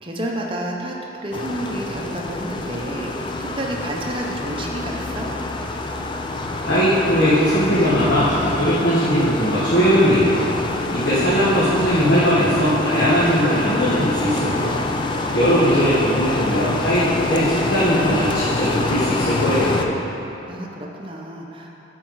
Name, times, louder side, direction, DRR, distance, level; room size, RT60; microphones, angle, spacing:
voice 1, 0.0-3.1 3.4-5.3 10.7-11.4 15.1-15.6 20.5-21.7, right 1 dB, 25° right, -1 dB, 0.7 m, -30 dB
sound 1, 1.3-19.9, left 2 dB, 25° left, 0.3 m, -26 dB
voice 2, 6.6-10.5 10.9-14.7 15.3-20.0, equal, 70° left, -11 dB, 1.4 m, -19 dB
8.4 x 4.5 x 4.7 m, 2.9 s
head